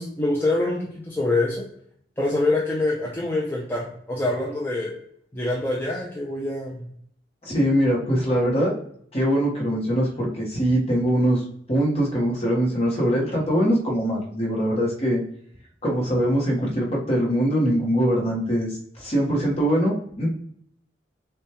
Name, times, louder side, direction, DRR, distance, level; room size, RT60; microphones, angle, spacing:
voice 1, 0.0-1.7 2.2-4.9 5.3-6.9, left 2 dB, 10° left, -3 dB, 0.6 m, -25 dB
voice 2, 7.4-8.7 9.1-11.4 11.7-15.2 15.8-20.3, equal, 35° left, -2 dB, 1.2 m, -22 dB
6.3 x 2.3 x 2.9 m, 0.65 s
head